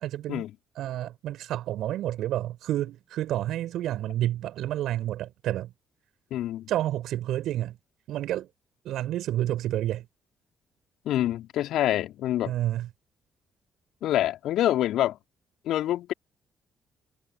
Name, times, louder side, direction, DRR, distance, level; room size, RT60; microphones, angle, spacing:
voice 1, 0.0-0.4 0.8-5.7 6.7-7.8 8.1-8.5 8.8-10.1 12.5-12.9, right 13 dB, 65° right, 5.3 m, -29 dB
voice 2, 6.3-6.7 11.0-12.5 14.0-15.2 15.6-16.1, left 13 dB, 65° left, 3.1 m, -26 dB
figure-of-eight pair, 40°, 0 cm